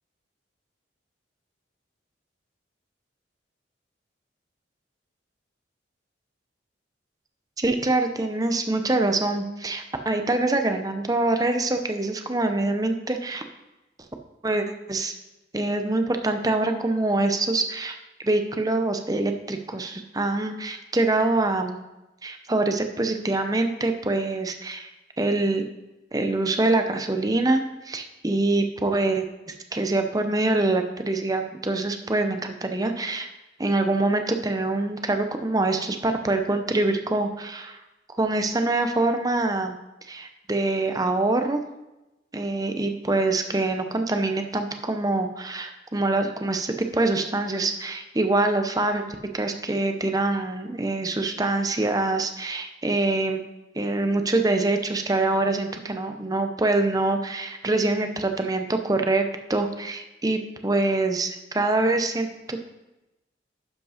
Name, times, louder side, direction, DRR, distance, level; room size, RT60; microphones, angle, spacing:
voice 1, 7.6-13.4 14.4-15.1 15.5-18.0 18.2-21.8 22.2-24.9 25.2-25.7 26.1-33.3 33.6-37.8 38.2-39.8 40.1-41.6 42.3-49.0 49.3-53.4 53.7-59.2 59.5-62.6, right 2 dB, 20° right, 6 dB, 0.7 m, -25 dB
11.5 x 5.2 x 5.0 m, 1.0 s
head